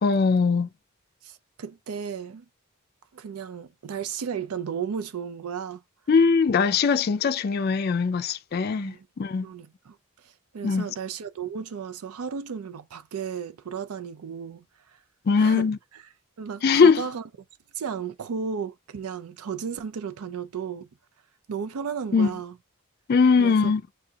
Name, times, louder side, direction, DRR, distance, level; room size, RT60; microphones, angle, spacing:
voice 1, 0.0-0.7 6.1-9.5 10.6-10.9 15.3-15.8 16.6-17.0 22.1-22.3 23.1-23.8, left 5 dB, 45° left, 0.4 m, -21 dB
voice 2, 1.2-2.5 3.1-5.8 8.8-9.1 9.4-15.0 15.3-15.7 16.4-17.2 17.7-20.9 21.5-22.5 23.4-23.7, right 6 dB, 85° right, 0.4 m, -34 dB
7.4 x 2.7 x 2.3 m
head